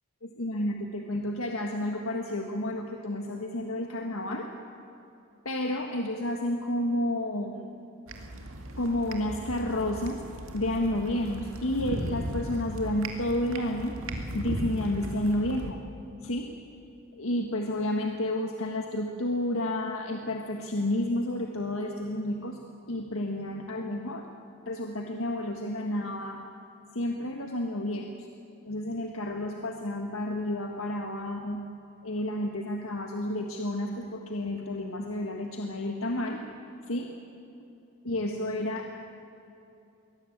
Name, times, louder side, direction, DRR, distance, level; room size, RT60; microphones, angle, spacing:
voice 1, 0.2-4.5 5.5-7.8 8.8-10.2 10.5-13.9 14.3-15.8 16.2-16.5 17.1-22.6 22.9-24.3 24.7-26.4 26.9-28.0 28.7-31.6 32.0-36.4 36.9-37.1 38.0-38.9, left 1 dB, 85° left, 3 dB, 1.6 m, -31 dB
sound 1, 8.1-15.7, right 1 dB, 80° right, 2.2 m, -37 dB
23.0 x 18.0 x 8.7 m, 2.8 s
head